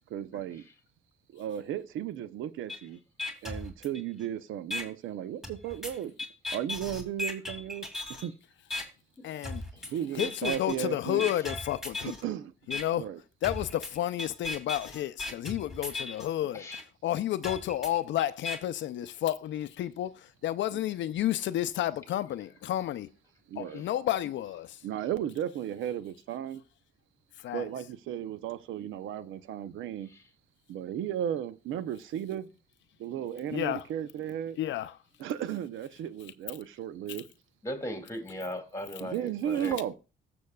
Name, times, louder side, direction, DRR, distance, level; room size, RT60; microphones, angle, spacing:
voice 1, 0.1-0.6 1.3-3.0 3.4-6.1 6.5-7.8 8.1-8.3 9.9-11.4 12.0-12.5 12.9-13.2 20.7-20.8 23.5-23.8 24.8-26.6 27.5-30.1 30.7-32.5 33.0-34.6 35.2-37.2 39.0-39.9, right 10 dB, 80° right, 0.6 m, -35 dB
sound 1, 2.7-2.8 3.2-4.2 4.7-4.8 5.4-8.3 8.7-8.8 9.4-9.9 10.2-10.8 11.2-12.2 12.7-12.8 13.4-16.3 16.7-16.8 17.4-18.6, left 2 dB, ahead, 2.5 m, -36 dB
voice 2, 9.2-9.6 10.2-12.2 12.7-13.0 13.4-16.7 17.0-23.1 23.6-24.8 27.4-27.7 33.5-33.9 34.6-35.0, left 12 dB, 70° left, 0.5 m, -31 dB
voice 3, 37.6-39.8, equal, 15° left, 2.1 m, -37 dB
15.0 x 7.0 x 2.3 m
cardioid pair, 90°, 20 cm